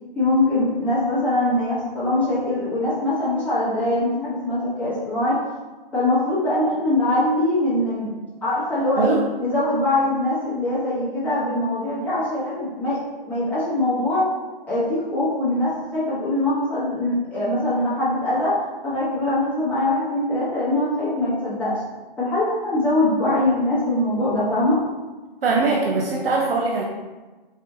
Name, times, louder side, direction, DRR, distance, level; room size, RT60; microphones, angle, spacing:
voice 1, 0.1-5.4 5.9-8.1 8.4-9.1 9.4-13.0 13.2-14.3 14.7-18.6 18.8-21.8 22.2-24.8, left 1 dB, 5° left, -11 dB, 0.9 m, -22 dB
voice 2, 25.4-26.8, right 4 dB, 75° right, -1 dB, 0.7 m, -21 dB
4.4 x 2.5 x 3.5 m, 1.2 s
hypercardioid pair, 145°, 29 cm